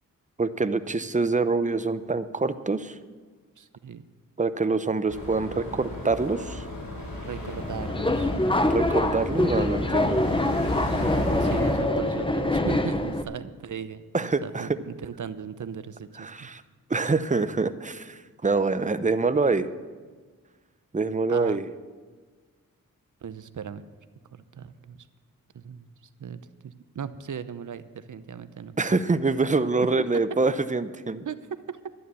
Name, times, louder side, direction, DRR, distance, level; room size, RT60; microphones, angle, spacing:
voice 1, 0.4-2.9 4.4-6.6 8.6-10.2 14.1-14.7 16.2-16.6 16.9-19.7 20.9-21.7 28.8-31.3, right 3 dB, 20° right, 12 dB, 0.8 m, -25 dB
voice 2, 3.6-4.0 7.2-8.3 11.4-16.5 21.3-21.6 23.2-23.8 24.3-25.0 25.5-25.9 26.2-28.7 31.2-31.8, right 7 dB, 60° right, 13 dB, 0.8 m, -37 dB
sound 1, 5.1-11.8, left 1 dB, 75° left, 4.5 m, -34 dB
Subway metro underground, 7.6-13.2, left 1 dB, 15° left, 1.1 m, -25 dB
11.5 x 10.5 x 7.0 m, 1.4 s
cardioid pair, 45°, 34 cm